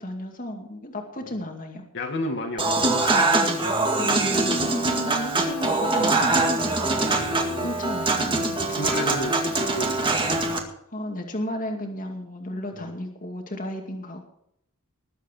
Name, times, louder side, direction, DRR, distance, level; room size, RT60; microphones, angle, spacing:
voice 1, 0.0-1.8 4.0-6.6 7.6-8.5 10.9-14.2, left 1 dB, 40° left, 3 dB, 2.3 m, -33 dB
voice 2, 1.9-3.0 6.9-7.7 8.6-9.9 12.7-12.9, left 1 dB, 55° left, 2 dB, 2.2 m, -32 dB
Human voice / Acoustic guitar / Piano, 2.6-10.6, right 2 dB, 25° right, 2.1 m, -23 dB
20.5 x 8.1 x 4.6 m, 0.74 s
head